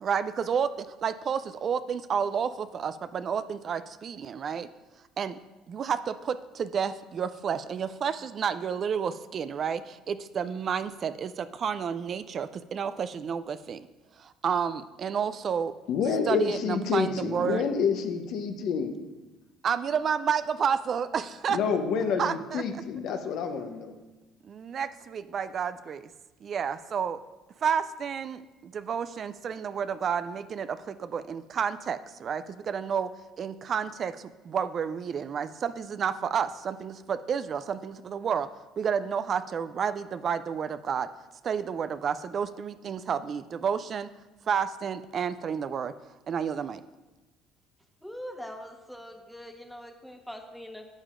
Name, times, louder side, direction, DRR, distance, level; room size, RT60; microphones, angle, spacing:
voice 1, 0.0-4.7 5.2-5.4 5.7-13.9 14.2-15.7 16.3-17.6 19.6-21.6 22.2-22.6 24.4-26.0 26.4-27.2 27.6-33.1 33.4-38.5 38.8-41.1 41.4-44.1 44.5-45.9 46.3-46.8, right 7 dB, 50° right, 13 dB, 0.3 m, -30 dB
voice 2, 15.9-19.0 21.5-23.9, left 6 dB, 65° left, 6 dB, 0.8 m, -28 dB
voice 3, 48.0-50.9, equal, ahead, 4 dB, 1.1 m, -42 dB
11.0 x 7.3 x 2.5 m, 1.1 s
supercardioid pair, 75°, 0 cm